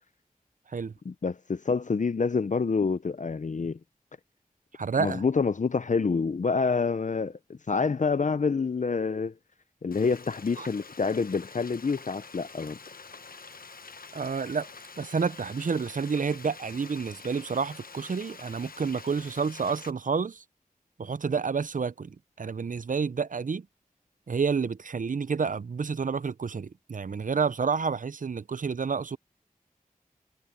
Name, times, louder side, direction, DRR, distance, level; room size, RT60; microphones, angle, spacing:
voice 1, 1.1-3.8 5.0-9.3 9.8-12.8, left 4 dB, 55° left, 0.6 m, -27 dB
voice 2, 4.7-5.2 10.6-10.7 14.1-14.7 15.0-20.4 21.0-23.7 24.3-29.2, right 5 dB, 65° right, 0.5 m, -29 dB
Frying (food), 9.9-19.9, left 4 dB, 75° left, 1.0 m, -47 dB
wide cardioid pair, 45°, 15 cm